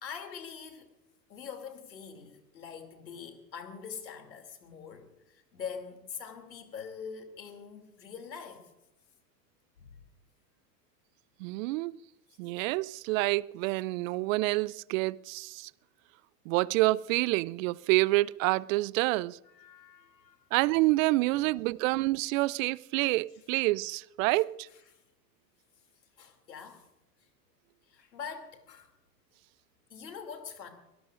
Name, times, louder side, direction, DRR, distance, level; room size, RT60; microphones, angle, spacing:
voice 1, 0.0-0.9 1.3-8.7 9.8-9.9 19.4-20.5 21.2-21.6 23.0-23.4 24.7-24.8 26.2-26.9 27.9-29.0 29.9-30.7, left 6 dB, 85° left, 3.0 m, -44 dB
voice 2, 11.4-12.0 12.4-15.7 16.5-19.4 20.5-24.7, right 21 dB, 55° right, 0.6 m, -28 dB
24.0 x 18.0 x 2.6 m
hypercardioid pair, 90°, 49 cm